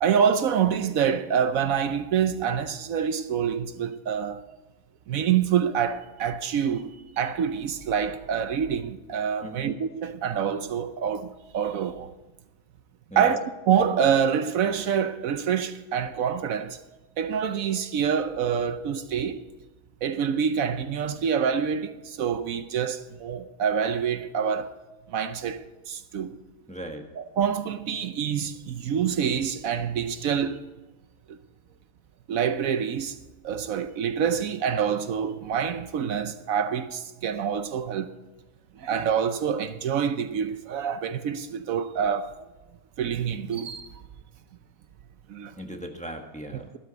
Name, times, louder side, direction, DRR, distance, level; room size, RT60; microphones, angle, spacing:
voice 1, 0.0-4.4 5.1-12.1 13.2-13.4 13.7-16.8 17.2-19.4 20.0-24.7 25.1-26.4 27.4-30.6 31.3-31.4 32.3-33.2 33.4-38.1 38.8-42.3 43.0-43.9 45.3-45.5, right 7 dB, 75° right, 1.1 m, -26 dB
voice 2, 9.4-9.7 13.1-13.4 26.7-27.1 45.6-46.7, equal, 5° left, 1.2 m, -38 dB
13.0 x 12.5 x 4.0 m
omnidirectional pair, 1.5 m